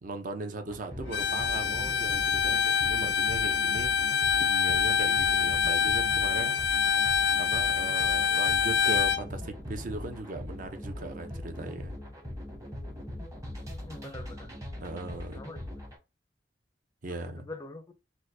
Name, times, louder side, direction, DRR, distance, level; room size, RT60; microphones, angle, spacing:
voice 1, 0.0-6.6 7.4-12.0 14.8-15.4 17.0-17.5, right 2 dB, 50° right, 0.6 m, -38 dB
sound 1, 0.7-16.0, left 1 dB, 20° right, 0.9 m, -41 dB
Bowed string instrument, 1.1-9.2, left 7 dB, 85° left, 0.4 m, -26 dB
voice 2, 13.7-14.5 15.1-15.7 17.2-17.9, left 2 dB, 20° left, 0.5 m, -45 dB
4.3 x 2.2 x 2.6 m
head